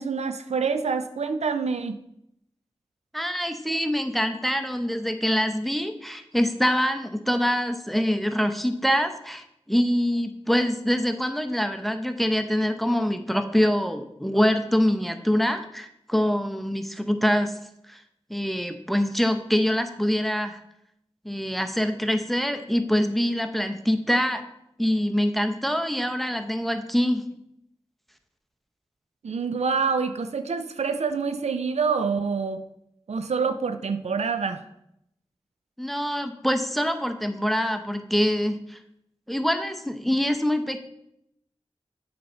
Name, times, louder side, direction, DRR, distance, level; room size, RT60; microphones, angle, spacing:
voice 1, 0.0-2.0 29.2-32.6 33.1-34.6, right 5 dB, 90° right, 9 dB, 0.4 m, -26 dB
voice 2, 3.1-17.6 17.9-18.0 18.3-20.6 21.2-24.4 24.8-27.2 35.8-38.8 39.3-40.9, equal, ahead, 7 dB, 0.8 m, -25 dB
8.5 x 4.3 x 5.5 m, 0.79 s
cardioid pair, 40°, 11 cm